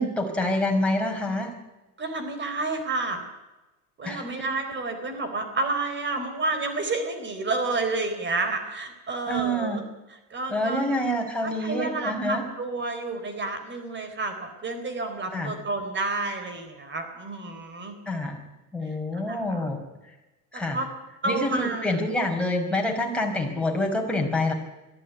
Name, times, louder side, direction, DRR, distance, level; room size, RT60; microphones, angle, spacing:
voice 1, 0.0-1.5 4.0-4.3 9.3-9.8 10.5-12.4 15.3-15.5 18.1-18.4 18.7-19.8 20.0-20.1 20.5-20.8 21.2-24.5, left 1 dB, 5° left, 1 dB, 5.3 m, -27 dB
voice 2, 2.0-3.2 4.0-9.8 10.3-10.8 11.4-17.9 18.8-19.6 20.5-20.9 21.2-22.0, right 3 dB, 30° right, 8 dB, 4.2 m, -30 dB
22.0 x 14.5 x 9.7 m, 1.1 s
supercardioid pair, 115°, 36 cm